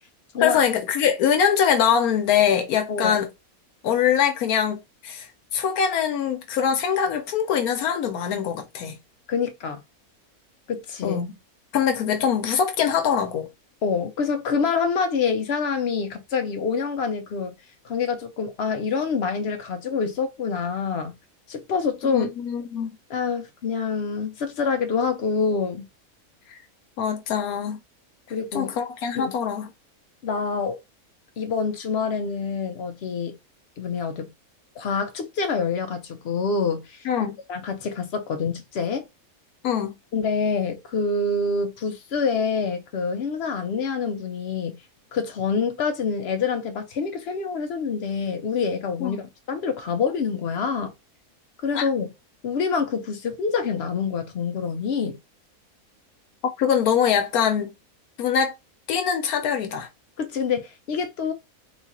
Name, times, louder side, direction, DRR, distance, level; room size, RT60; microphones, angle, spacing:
voice 1, 0.4-3.3 3.8-9.0 11.0-11.3 11.7-13.5 22.0-23.0 27.0-27.8 28.5-29.7 37.0-37.4 39.6-40.0 49.0-49.2 51.7-51.8 56.6-57.7 58.2-58.5 58.9-59.9, left 8 dB, 75° left, 1.1 m, -23 dB
voice 2, 2.9-3.2 9.3-9.8 10.7-11.2 13.8-17.5 17.8-21.1 21.5-22.3 23.1-25.9 28.3-28.7 29.1-29.3 30.2-30.8 31.4-33.4 33.8-34.3 34.8-39.0 40.1-44.8 45.1-50.9 51.6-52.1 52.4-55.2 60.2-61.3, left 5 dB, 60° left, 0.7 m, -26 dB
3.8 x 2.4 x 2.8 m
omnidirectional pair, 1.6 m